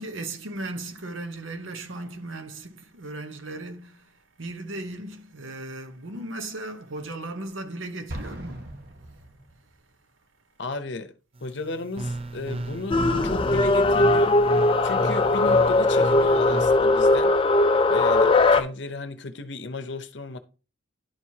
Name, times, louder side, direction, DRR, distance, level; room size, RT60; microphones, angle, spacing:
voice 1, 0.0-8.8, right 2 dB, 80° right, 1.0 m, -37 dB
Explosion, 8.1-9.9, right 1 dB, 55° right, 1.3 m, -39 dB
voice 2, 10.6-11.1 11.4-14.4 14.8-17.3 17.9-20.4, left 3 dB, 60° left, 0.7 m, -34 dB
sound 1, 11.4-16.8, right 2 dB, 30° right, 0.5 m, -34 dB
sound 2, 12.9-18.6, left 2 dB, 25° left, 0.4 m, -19 dB
11.5 x 4.7 x 2.8 m
head